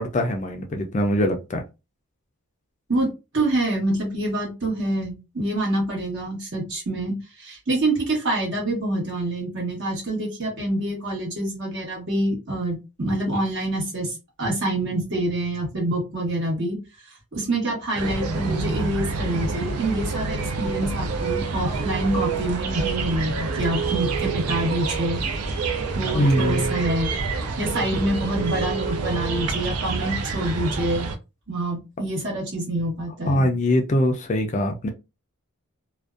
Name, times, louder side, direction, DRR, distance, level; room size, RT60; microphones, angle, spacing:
voice 1, 0.0-1.6 26.1-26.8 33.3-34.9, left 1 dB, 35° left, 0.3 m, -22 dB
voice 2, 3.3-16.8 17.3-25.2 25.9-27.1 27.6-31.1 31.5-33.5, right 1 dB, 50° right, 1.1 m, -26 dB
sound 1, 17.9-31.2, right 4 dB, 90° right, 0.5 m, -27 dB
2.5 x 2.1 x 2.3 m
head